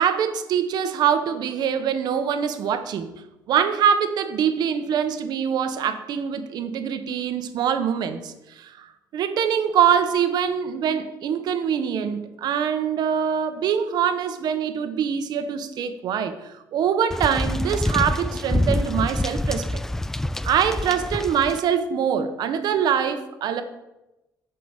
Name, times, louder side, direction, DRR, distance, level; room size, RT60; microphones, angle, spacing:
voice 1, 0.0-3.1 3.5-8.9 9.1-16.3 16.7-19.7 20.4-23.6, right 8 dB, 70° right, 9 dB, 1.1 m, -24 dB
sound 1, 17.1-21.6, left 1 dB, 5° left, 0.3 m, -26 dB
9.4 x 5.9 x 7.3 m, 0.97 s
cardioid pair, 120°, 7 cm